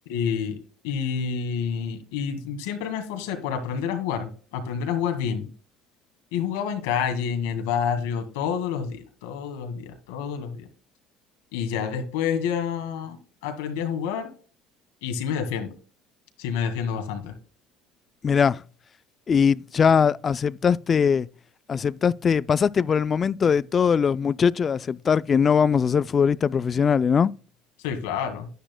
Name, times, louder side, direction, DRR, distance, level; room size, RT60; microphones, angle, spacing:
voice 1, 0.1-0.6 0.8-5.5 6.3-10.7 11.5-14.3 15.0-15.7 16.4-17.3 27.8-28.5, left 7 dB, 90° left, 1.8 m, -28 dB
voice 2, 18.2-18.6 19.3-21.3 21.7-27.3, left 6 dB, 35° left, 0.3 m, -21 dB
10.0 x 10.0 x 2.2 m
supercardioid pair, 95°, 0 cm